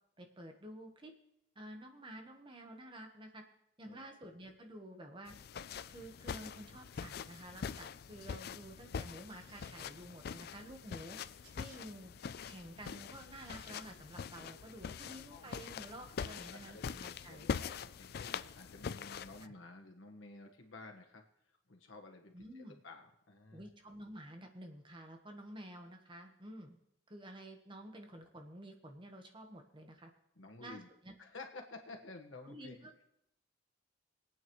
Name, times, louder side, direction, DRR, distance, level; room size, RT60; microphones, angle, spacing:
voice 1, 0.2-1.1 1.5-3.4 3.8-5.3 5.9-11.2 11.5-12.1 12.4-17.5 19.4-19.5 22.3-22.8 23.5-26.8 27.1-30.1 30.6-31.1 32.4-32.9, right 1 dB, 25° right, 4 dB, 1.2 m, -51 dB
voice 2, 3.8-4.2 15.3-15.5 16.2-21.2 21.7-23.7 28.0-28.1 30.3-30.9 31.2-32.9, left 2 dB, 85° left, 3 dB, 1.5 m, -53 dB
sound 1, 5.3-19.5, left 6 dB, 55° left, 0.4 m, -44 dB
sound 2, 7.1-7.4 9.3-9.8 11.4-11.8 13.3-13.9 15.5-15.8 16.9-17.3, right 3 dB, 85° right, 3.6 m, -64 dB
22.5 x 8.9 x 3.1 m, 0.80 s
head